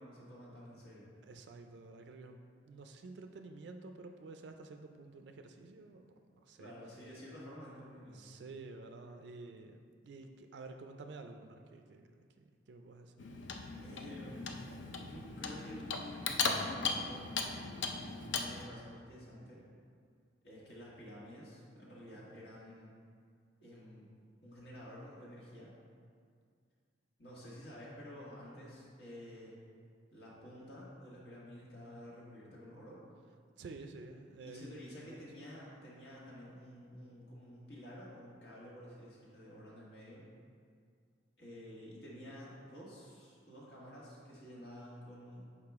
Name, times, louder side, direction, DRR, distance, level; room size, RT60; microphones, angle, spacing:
voice 1, 0.0-1.1 6.6-8.4 13.8-14.7 15.0-19.6 20.4-22.9 23.6-24.1 24.4-25.7 27.2-29.6 30.1-33.0 34.4-40.2 41.4-45.5, equal, 60° left, -6 dB, 1.6 m, -51 dB
voice 2, 1.2-6.7 8.1-13.3 33.6-35.2, right 3 dB, 65° right, 5 dB, 0.4 m, -51 dB
Clock, 13.2-18.7, left 4 dB, 80° left, 0.5 m, -38 dB
6.7 x 4.9 x 3.5 m, 2.2 s
head